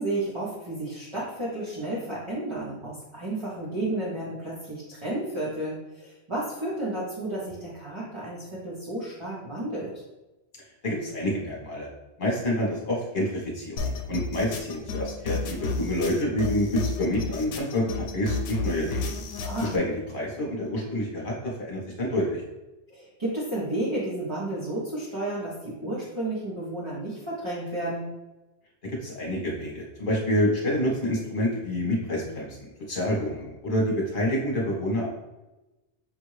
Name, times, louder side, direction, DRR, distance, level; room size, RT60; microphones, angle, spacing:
voice 1, 0.0-9.9 19.4-19.8 22.9-28.1, right 1 dB, 25° right, -8 dB, 1.0 m, -32 dB
voice 2, 10.8-11.9 12.2-19.1 19.6-22.4 28.8-32.6 32.9-35.1, left 1 dB, 45° left, -3 dB, 1.2 m, -28 dB
sound 1, 13.8-19.8, left 3 dB, 80° left, 1.0 m, -31 dB
5.5 x 2.6 x 3.1 m, 1.0 s
omnidirectional pair, 1.2 m